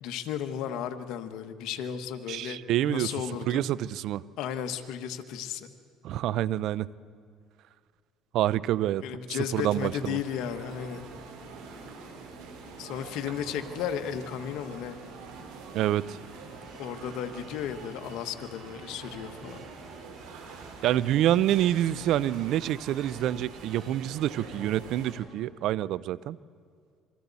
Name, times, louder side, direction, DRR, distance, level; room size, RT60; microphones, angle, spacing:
voice 1, 0.0-2.6 2.9-3.6 4.4-5.7 9.0-11.1 12.8-15.0 16.8-19.6, left 9 dB, 75° left, 7 dB, 1.3 m, -34 dB
voice 2, 2.3-3.1 3.5-4.2 6.0-6.9 8.3-9.0 9.5-10.2 15.7-16.2 20.8-26.4, right 12 dB, 70° right, 19 dB, 0.5 m, -27 dB
sound 1, 9.6-25.1, right 4 dB, 90° right, 4.2 m, -45 dB
sound 2, 16.3-24.4, right 3 dB, 35° right, 3.4 m, -58 dB
28.0 x 23.0 x 4.1 m, 2.1 s
cardioid pair, 100°, 0 cm